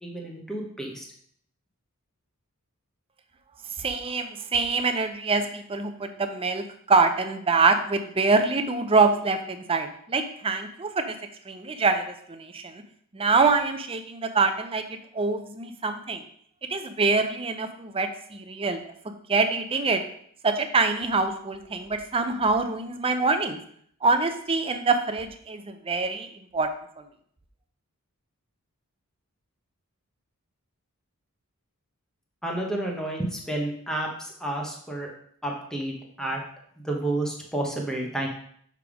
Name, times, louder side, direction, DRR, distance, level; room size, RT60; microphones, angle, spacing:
voice 1, 0.0-1.1 32.4-35.1 35.4-36.4 36.8-38.3, right 1 dB, 5° left, -1 dB, 1.0 m, -30 dB
voice 2, 3.8-11.1 11.5-12.8 13.1-16.2 16.7-18.8 19.3-20.0 20.4-23.6 24.0-26.3 26.5-26.7, right 4 dB, 25° right, 7 dB, 0.6 m, -25 dB
6.6 x 3.5 x 5.0 m, 0.64 s
head